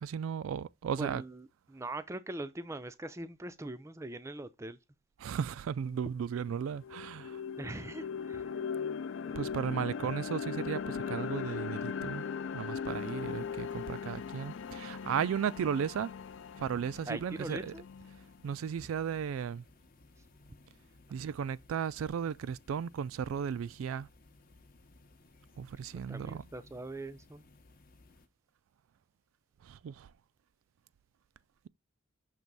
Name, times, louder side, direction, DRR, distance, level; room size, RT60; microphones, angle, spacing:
voice 1, 0.0-1.2 5.2-7.4 9.4-12.3 12.5-16.1 16.6-17.7 18.4-19.6 21.1-24.1 25.6-26.4 29.6-30.1, right 7 dB, 85° right, 0.3 m, -35 dB
voice 2, 1.0-4.8 7.6-8.4 17.1-17.8 26.1-27.4, right 2 dB, 15° right, 0.4 m, -41 dB
sound 1, 5.9-6.0 6.4-18.5, left 6 dB, 65° left, 0.3 m, -39 dB
sound 2, 12.9-28.3, left 2 dB, 45° left, 0.7 m, -60 dB
6.0 x 3.1 x 5.2 m
head